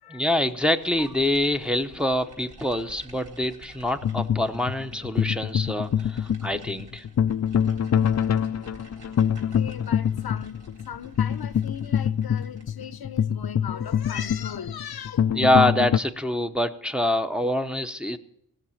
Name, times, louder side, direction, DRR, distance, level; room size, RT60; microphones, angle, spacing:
voice 1, 0.1-7.0 15.3-18.2, left 1 dB, 5° right, 0.8 m, -25 dB
sound 1, 0.6-12.9, right 1 dB, 85° right, 3.8 m, -50 dB
sound 2, 4.0-16.0, left 8 dB, 45° left, 0.4 m, -25 dB
voice 2, 9.4-15.4, left 8 dB, 80° left, 0.8 m, -38 dB
18.0 x 6.7 x 8.5 m
wide cardioid pair, 110°, 37 cm